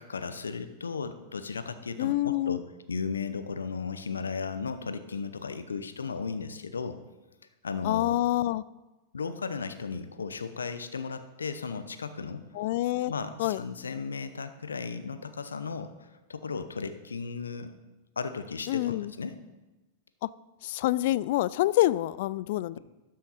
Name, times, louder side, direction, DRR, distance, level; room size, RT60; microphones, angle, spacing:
voice 1, 0.0-7.0 7.6-8.2 9.1-12.4 13.1-15.9 16.3-17.7 18.2-19.4, left 5 dB, 90° left, 11 dB, 0.7 m, -35 dB
voice 2, 2.0-2.6 7.8-8.6 12.5-13.1 13.4-13.6 18.7-19.1 20.2-20.3 20.6-22.8, left 15 dB, 60° left, 19 dB, 0.3 m, -27 dB
12.5 x 6.4 x 4.2 m, 1.1 s
hypercardioid pair, 100°, 0 cm